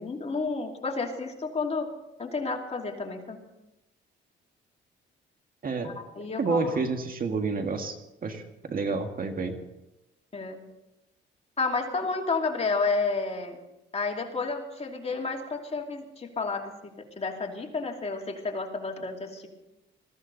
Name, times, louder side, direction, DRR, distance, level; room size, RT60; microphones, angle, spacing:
voice 1, 0.0-1.9 2.2-3.4 5.8-6.8 10.3-10.6 11.6-13.6 13.9-16.7 17.2-19.5, left 4 dB, 30° left, 1 dB, 2.7 m, -31 dB
voice 2, 5.6-5.9 6.4-7.9 8.2-9.5, right 4 dB, 45° right, 5 dB, 1.9 m, -29 dB
21.0 x 14.5 x 4.0 m, 0.93 s
cardioid pair, 90°, 20 cm